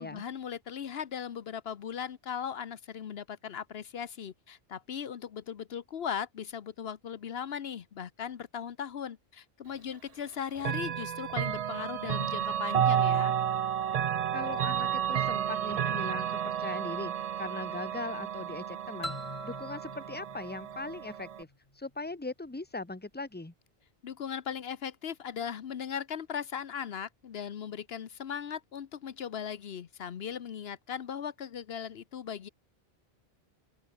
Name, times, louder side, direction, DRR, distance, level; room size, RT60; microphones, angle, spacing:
voice 1, 0.0-13.3 24.0-32.5, left 8 dB, 75° left, 1.1 m, -38 dB
Chime / Clock, 10.6-21.4, right 9 dB, 50° right, 0.4 m, -31 dB
voice 2, 14.3-19.1 19.4-21.5 21.7-23.5, left 3 dB, 10° left, 1.2 m, -40 dB
sound 1, 19.0-21.7, left 1 dB, 30° left, 3.7 m, -43 dB
open air
omnidirectional pair, 1.1 m